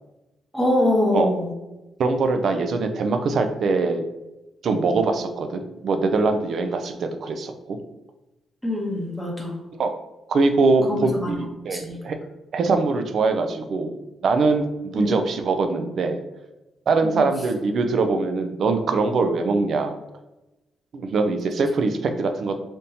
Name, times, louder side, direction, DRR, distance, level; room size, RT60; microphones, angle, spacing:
voice 1, 0.5-1.5 8.6-9.5 10.9-11.4 11.7-12.0 14.9-15.1 17.0-17.3, left 1 dB, 5° right, -2 dB, 0.8 m, -24 dB
voice 2, 2.0-4.0 4.6-7.8 9.8-9.9 10.3-12.2 12.5-16.2 16.9-20.0 20.9-22.6, right 3 dB, 60° right, 7 dB, 0.4 m, -22 dB
3.5 x 2.7 x 2.7 m, 1.0 s
cardioid pair, 110°, 0 cm